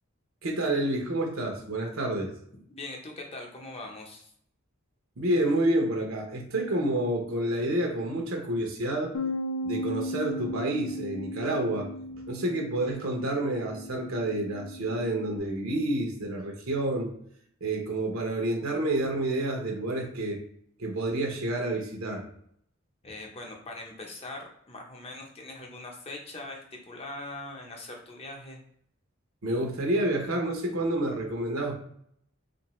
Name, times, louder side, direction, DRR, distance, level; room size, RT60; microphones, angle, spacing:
voice 1, 0.4-2.3 5.2-9.1 9.6-17.1 17.6-20.4 20.8-22.3 29.4-31.7, right 1 dB, 75° right, 2 dB, 0.8 m, -29 dB
voice 2, 2.7-4.3 23.0-28.6, left 2 dB, 30° left, 1 dB, 0.7 m, -41 dB
Bass guitar, 9.1-15.4, left 1 dB, 90° left, 0.4 m, -36 dB
3.8 x 2.5 x 3.1 m, 0.67 s
head